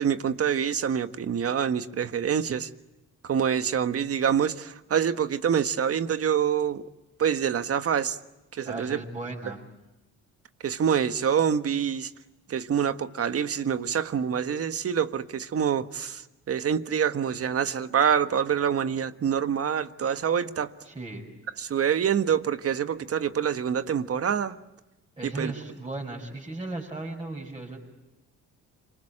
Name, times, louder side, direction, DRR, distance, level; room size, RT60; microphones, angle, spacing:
voice 1, 0.0-2.7 3.2-6.9 7.2-8.2 8.5-9.0 10.6-12.1 12.5-20.7 21.6-24.6 25.2-25.5, right 8 dB, 50° right, 1.4 m, -26 dB
voice 2, 8.6-9.6 20.8-21.3 25.2-27.8, right 2 dB, 15° right, 6.6 m, -36 dB
26.5 x 25.0 x 8.8 m
cardioid pair, 90°, 30 cm